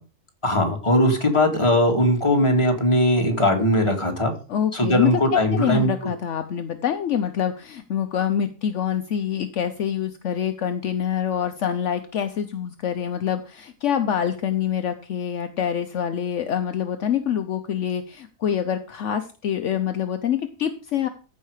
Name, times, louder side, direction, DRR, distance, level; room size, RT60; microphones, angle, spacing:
voice 1, 0.4-4.3 4.7-5.9, left 1 dB, 20° left, 2 dB, 2.2 m, -19 dB
voice 2, 4.5-21.1, left 9 dB, 65° left, 8 dB, 1.0 m, -26 dB
14.5 x 5.6 x 4.9 m, 0.36 s
omnidirectional pair, 1.4 m